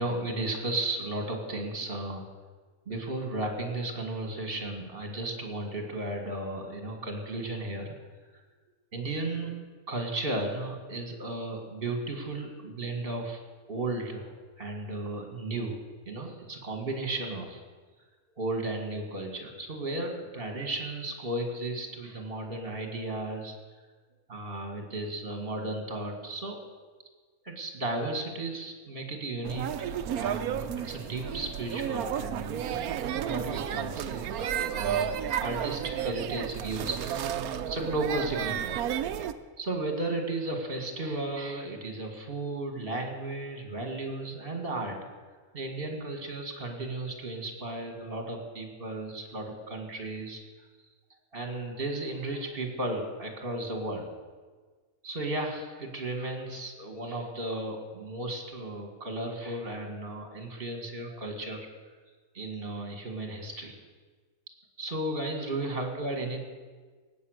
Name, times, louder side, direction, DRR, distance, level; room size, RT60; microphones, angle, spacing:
voice 1, 0.0-2.3 2.9-7.9 8.9-9.5 9.9-13.4 13.7-15.8 16.1-17.6 18.3-23.6 24.3-26.6 27.4-32.7 33.2-35.1 35.4-38.8 39.6-45.1 45.5-50.7 51.3-54.1 55.0-61.6 62.3-63.8 64.8-66.4, right 2 dB, 40° right, 4 dB, 2.2 m, -34 dB
sound 1, 29.4-39.3, right 9 dB, 80° right, 1.1 m, -32 dB
18.5 x 8.5 x 6.6 m, 1.4 s
omnidirectional pair, 1.5 m